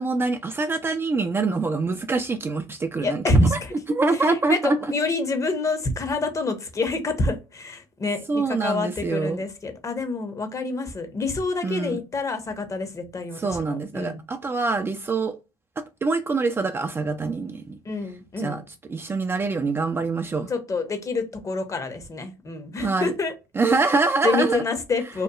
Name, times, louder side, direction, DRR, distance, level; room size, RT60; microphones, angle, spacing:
voice 1, 0.0-3.2 3.5-3.6 3.9-4.9 8.3-9.4 11.6-12.0 13.4-15.3 16.0-17.8 18.4-18.6 18.9-20.5 22.8-23.1 23.6-24.6, right 3 dB, 20° right, 0.3 m, -25 dB
voice 2, 3.0-3.7 4.2-14.2 17.8-18.6 20.5-23.3 24.2-25.2, left 2 dB, 30° left, 0.7 m, -27 dB
2.8 x 2.2 x 2.2 m
hypercardioid pair, 70°, 11 cm